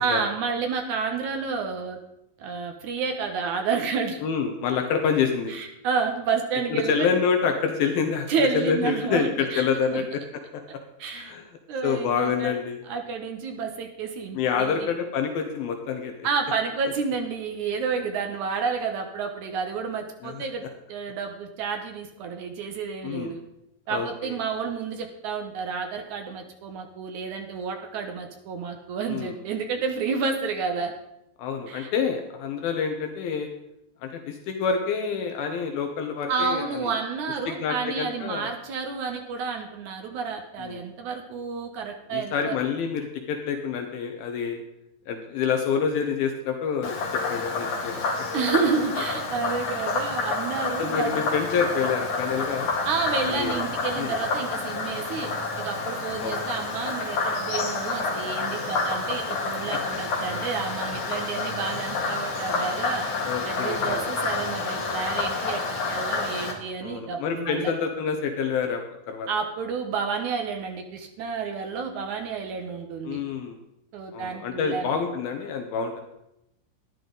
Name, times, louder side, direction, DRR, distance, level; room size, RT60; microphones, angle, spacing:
voice 1, 0.0-2.0 2.4-4.2 5.5-7.1 8.3-10.0 11.0-11.3 11.7-12.6 12.9-14.9 16.2-20.6 20.9-23.4 23.9-30.9 31.7-31.9 36.3-42.6 48.3-51.3 52.9-55.3 55.6-63.1 63.4-67.7 69.3-73.2 73.9-75.0, right 5 dB, 70° right, 4 dB, 1.9 m, -30 dB
voice 2, 4.2-5.5 6.7-8.3 8.5-10.2 10.5-10.8 11.1-11.5 11.8-12.8 14.3-16.3 20.2-20.4 23.0-23.3 23.9-24.4 29.1-29.3 31.4-33.5 34.0-36.9 37.5-38.5 40.6-40.8 42.1-44.6 45.1-46.9 47.3-48.0 50.8-52.7 53.2-53.6 54.0-54.1 56.2-56.3 63.2-64.0 66.8-68.8 69.1-69.3 73.1-73.6 74.1-76.0, left 6 dB, 75° left, 5 dB, 2.7 m, -27 dB
Frog, 46.8-66.5, left 3 dB, 55° left, 3.1 m, -29 dB
12.5 x 11.0 x 3.9 m, 0.84 s
omnidirectional pair, 4.5 m